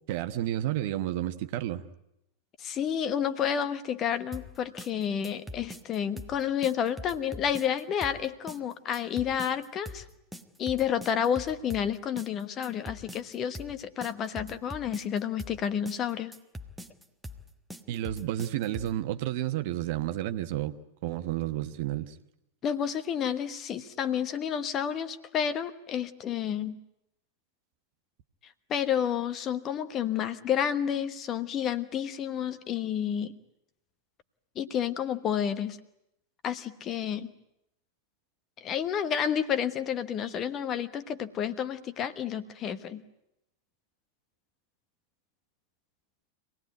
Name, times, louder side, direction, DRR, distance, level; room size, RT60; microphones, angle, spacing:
voice 1, 0.1-1.8 17.9-20.7 21.0-22.1, right 13 dB, 50° right, 10 dB, 1.2 m, -31 dB
voice 2, 2.6-10.0 10.6-16.3 22.6-26.8 28.4-33.3 34.5-35.8 36.4-37.3 38.6-43.0, left 8 dB, 30° left, 12 dB, 1.3 m, -30 dB
sound 1, 4.3-19.0, left 1 dB, 5° right, 1.3 m, -43 dB
25.5 x 18.5 x 9.4 m, 0.85 s
figure-of-eight pair, 90°, 0 cm